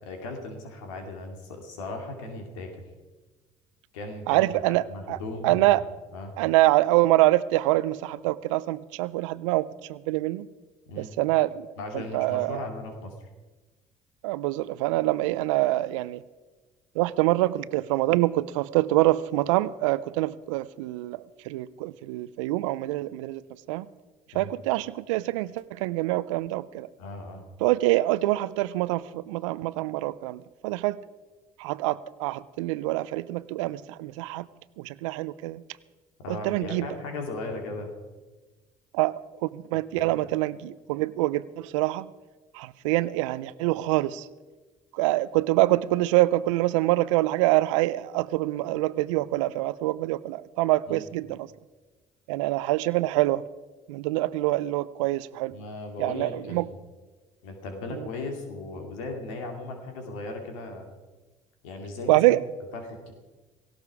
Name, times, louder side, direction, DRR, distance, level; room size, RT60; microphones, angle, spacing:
voice 1, 0.0-2.7 3.9-5.8 6.1-6.3 10.9-11.1 11.8-13.3 24.3-24.5 27.0-27.4 36.2-37.9 40.0-40.1 50.9-51.0 55.5-56.8 57.4-60.9 61.6-62.2 62.7-63.1, left 2 dB, 80° left, 4 dB, 2.6 m, -37 dB
voice 2, 4.3-4.8 5.1-5.2 5.4-5.8 6.4-10.5 11.0-11.7 11.9-12.6 14.2-16.2 17.0-23.4 23.7-23.9 24.3-26.9 27.6-31.0 31.6-34.5 34.8-35.6 36.3-36.9 38.9-42.1 42.5-44.3 44.9-51.5 52.3-53.4 53.9-55.5 56.0-56.7 58.0-58.1 62.1-62.4, right 17 dB, 80° right, 18 dB, 0.5 m, -25 dB
17.5 x 16.5 x 4.8 m, 1.3 s
hypercardioid pair, 55°, 16 cm